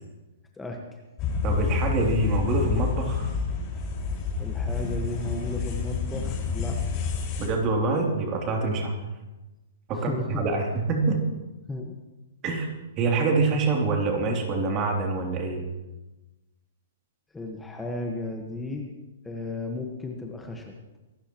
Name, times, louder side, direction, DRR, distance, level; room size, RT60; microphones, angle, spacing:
voice 1, 0.6-1.0 4.4-6.8 8.7-8.8 9.9-10.5 11.7-12.0 17.3-18.9 19.2-20.8, left 2 dB, 10° left, 1 dB, 1.5 m, -34 dB
sound 1, 1.2-7.5, left 5 dB, 35° left, 5.3 m, -28 dB
voice 2, 1.4-3.3 7.4-9.0 9.9-11.2 12.4-12.7 13.0-15.7, right 3 dB, 30° right, 1 dB, 3.1 m, -25 dB
24.5 x 12.5 x 3.1 m, 1.1 s
hypercardioid pair, 125°, 0 cm